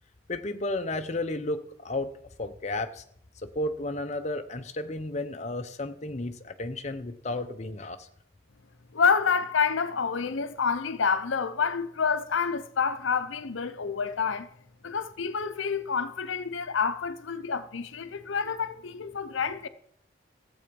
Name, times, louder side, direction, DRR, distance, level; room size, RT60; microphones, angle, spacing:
voice 1, 0.3-2.1 2.4-3.0 3.4-8.1, left 2 dB, 35° left, 0.7 m, -33 dB
voice 2, 8.9-14.5 14.8-19.7, left 5 dB, 75° left, 0.7 m, -28 dB
14.5 x 8.0 x 5.2 m
head